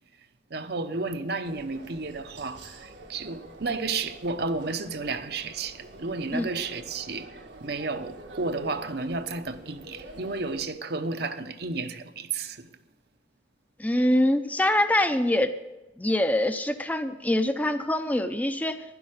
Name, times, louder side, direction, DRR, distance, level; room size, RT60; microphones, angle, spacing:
voice 1, 0.5-12.7, right 3 dB, 65° right, 0.9 m, -32 dB
sound 1, 1.4-10.7, right 2 dB, 90° right, 1.7 m, -46 dB
voice 2, 13.8-15.5 16.0-18.8, left 1 dB, 10° left, 0.6 m, -24 dB
12.0 x 10.5 x 6.5 m
head